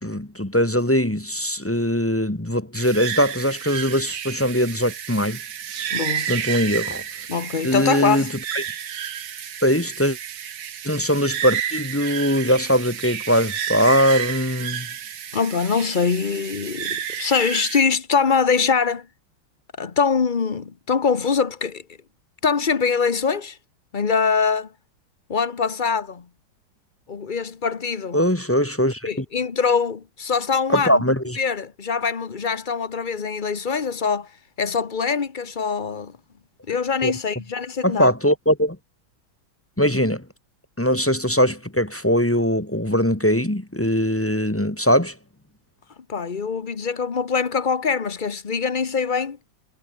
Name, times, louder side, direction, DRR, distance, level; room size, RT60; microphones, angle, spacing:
voice 1, 0.0-5.4 6.3-7.0 7.6-8.3 9.6-10.2 10.8-14.9 28.1-29.2 30.7-31.4 37.0-37.1 37.8-38.8 39.8-40.2 40.8-45.1, equal, 10° left, 1.2 m, -21 dB
sound 1, 2.7-17.8, right 9 dB, 60° right, 1.8 m, -31 dB
voice 2, 5.9-6.3 7.3-8.3 15.3-19.1 19.8-21.8 22.4-23.6 23.9-24.7 25.3-26.3 27.1-28.2 29.1-31.0 31.4-34.3 34.6-36.2 36.7-38.1 46.1-49.4, left 5 dB, 35° left, 0.9 m, -23 dB
omnidirectional pair, 2.2 m